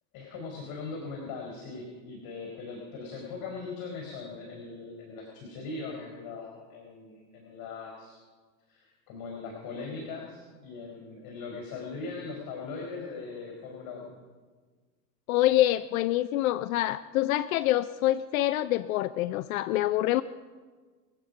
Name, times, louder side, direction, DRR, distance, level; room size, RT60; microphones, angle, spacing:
voice 1, 0.1-8.2 8.7-14.1, left 4 dB, 45° left, 0 dB, 4.3 m, -40 dB
voice 2, 15.3-20.2, left 14 dB, 65° left, 15 dB, 0.6 m, -26 dB
23.5 x 8.3 x 5.3 m, 1.4 s
hypercardioid pair, 105°, 46 cm